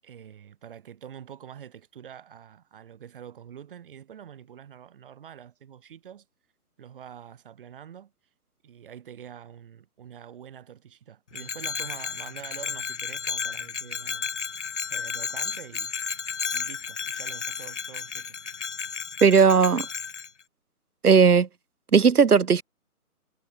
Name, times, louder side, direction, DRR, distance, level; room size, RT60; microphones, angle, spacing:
voice 1, 0.0-6.3 6.8-8.1 8.6-14.4 14.9-15.9 16.5-18.4, right 9 dB, 35° right, 7.7 m, -45 dB
Bell, 11.3-20.3, left 6 dB, 50° left, 4.9 m, -33 dB
voice 2, 19.2-19.9 21.0-21.5 21.9-22.6, right 6 dB, 85° right, 1.2 m, -17 dB
figure-of-eight pair, 160°, 45 cm